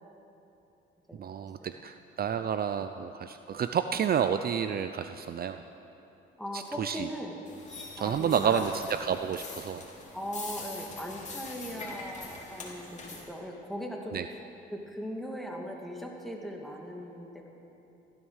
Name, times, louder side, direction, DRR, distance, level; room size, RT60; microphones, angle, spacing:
voice 1, 1.2-5.6 6.5-7.1 8.0-9.8 14.1-14.3, right 8 dB, 50° right, 9 dB, 0.6 m, -30 dB
voice 2, 6.4-7.4 8.0-8.7 10.1-14.2 14.7-17.5, equal, ahead, 0 dB, 2.4 m, -39 dB
sound 1, 7.5-13.2, left 3 dB, 35° left, 3.0 m, -43 dB
16.0 x 13.0 x 6.4 m, 3.0 s
cardioid pair, 90°, 20 cm